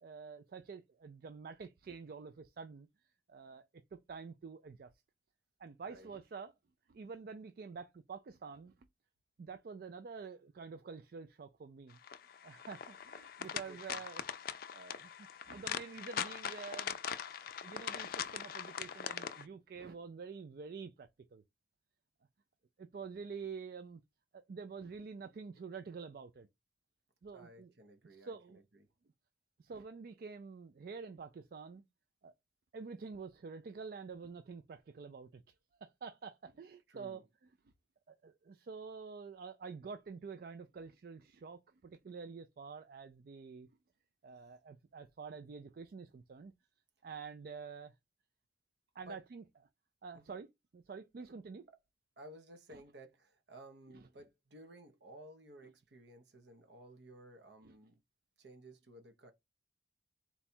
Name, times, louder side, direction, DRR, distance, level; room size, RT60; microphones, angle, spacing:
voice 1, 0.0-2.9 3.3-3.6 3.9-4.9 5.6-6.5 6.9-8.7 9.4-12.0 12.4-17.0 17.3-21.4 22.8-24.0 24.3-26.5 27.2-27.7 28.2-28.6 29.6-31.8 32.2-32.3 32.7-35.5 35.8-37.2 38.1-43.7 44.2-46.5 47.0-47.9 49.0-49.4 50.0-50.5 50.7-51.7 57.6-57.7, right 5 dB, 55° right, 0.3 m, -48 dB
sound 1, 12.0-19.4, left 8 dB, 50° left, 0.4 m, -41 dB
voice 2, 13.5-14.0 27.3-28.9 36.5-37.3 49.0-49.3 50.1-50.4 51.2-51.3 51.7-51.8 52.2-58.0 58.4-59.3, right 1 dB, 70° right, 0.8 m, -56 dB
4.1 x 2.3 x 4.3 m
head